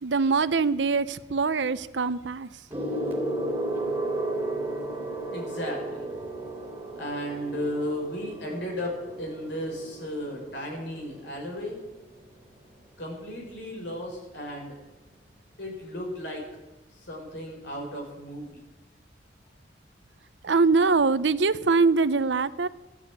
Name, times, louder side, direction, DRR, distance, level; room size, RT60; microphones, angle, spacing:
voice 1, 0.0-2.5 20.4-22.7, right 4 dB, 90° right, 14 dB, 0.7 m, -23 dB
Gong, 2.7-12.5 13.4-13.7, right 1 dB, 15° right, 2.8 m, -34 dB
voice 2, 5.3-6.0 7.0-11.8 13.0-14.7 15.6-16.4 17.1-18.6, left 1 dB, 75° left, 0 dB, 5.1 m, -34 dB
14.5 x 10.5 x 8.7 m, 1.1 s
head